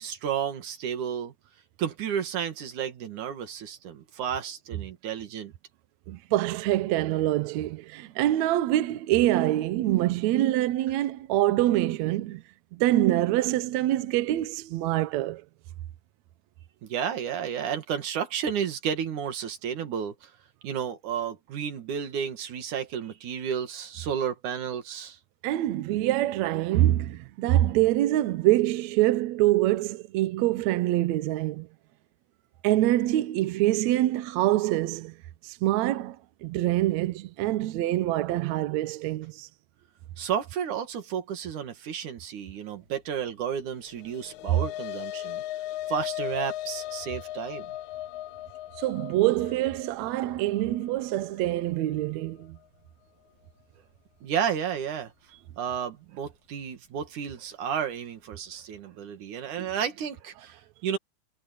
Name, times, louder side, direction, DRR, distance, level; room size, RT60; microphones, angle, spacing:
voice 1, 0.0-1.3 1.8-5.5 16.8-20.3 20.6-25.2 40.2-45.4 45.9-47.7 54.2-55.1 55.6-61.0, right 8 dB, 60° right, 3.2 m, -32 dB
voice 2, 6.1-12.4 12.7-15.4 25.4-31.7 32.6-35.1 35.4-36.2 36.4-39.5 48.8-52.6, right 15 dB, 80° right, 1.6 m, -25 dB
sound 1, 43.9-52.4, left 13 dB, 90° left, 1.7 m, -38 dB
omnidirectional pair, 4.2 m